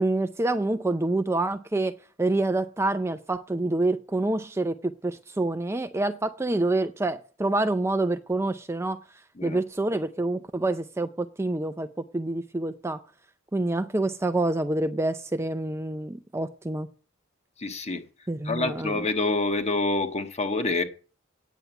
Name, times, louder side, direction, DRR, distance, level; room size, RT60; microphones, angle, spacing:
voice 1, 0.0-9.0 9.4-13.0 13.5-16.9 18.3-19.1, right 2 dB, 15° right, 0.5 m, -27 dB
voice 2, 17.6-18.0 18.4-20.8, left 3 dB, 35° left, 1.5 m, -27 dB
9.3 x 7.6 x 8.1 m
head